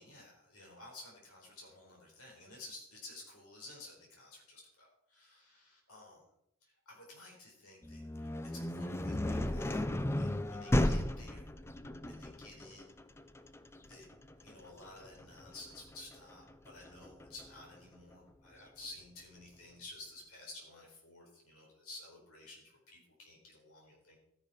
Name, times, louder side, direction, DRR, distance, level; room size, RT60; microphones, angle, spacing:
voice 1, 0.0-6.2 6.6-9.8 10.2-11.5 12.1-12.9 13.8-14.1 14.4-24.2, left 2 dB, 75° left, -1 dB, 4.2 m, -53 dB
sound 1, 7.8-17.6, left 1 dB, 10° left, 0.5 m, -35 dB
13.0 x 10.5 x 4.2 m, 0.76 s
head